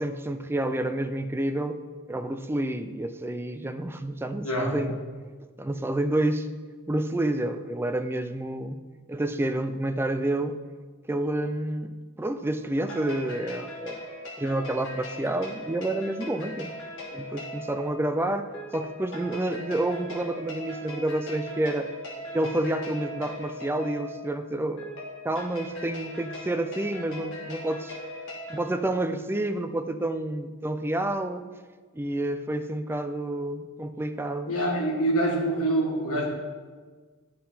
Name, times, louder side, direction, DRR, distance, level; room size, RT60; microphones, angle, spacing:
voice 1, 0.0-1.8 2.1-4.9 5.6-6.5 6.9-8.8 9.1-10.6 11.1-14.1 14.4-16.7 17.1-21.9 22.3-24.9 25.2-28.0 28.5-31.4 31.9-34.5, right 1 dB, 10° right, 8 dB, 0.3 m, -29 dB
voice 2, 4.4-4.9 34.5-36.3, right 1 dB, 80° left, -1 dB, 1.7 m, -25 dB
sound 1, 12.8-28.6, left 1 dB, 60° left, 1.6 m, -39 dB
11.5 x 3.8 x 4.2 m, 1.5 s
head